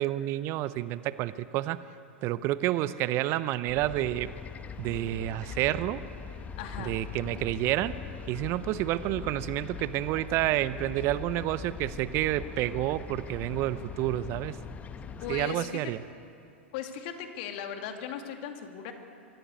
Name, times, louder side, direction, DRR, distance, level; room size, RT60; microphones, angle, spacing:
voice 1, 0.0-1.8 2.2-4.3 4.8-6.0 6.8-8.0 8.3-14.6 15.3-16.0, right 15 dB, 40° right, 16 dB, 0.6 m, -29 dB
sound 1, 3.7-15.4, left 6 dB, 20° left, 1.1 m, -41 dB
voice 2, 6.6-6.9 15.2-15.8 16.7-18.9, left 9 dB, 50° left, 5 dB, 2.4 m, -37 dB
24.5 x 15.0 x 8.4 m, 2.6 s
figure-of-eight pair, 95°, 7 cm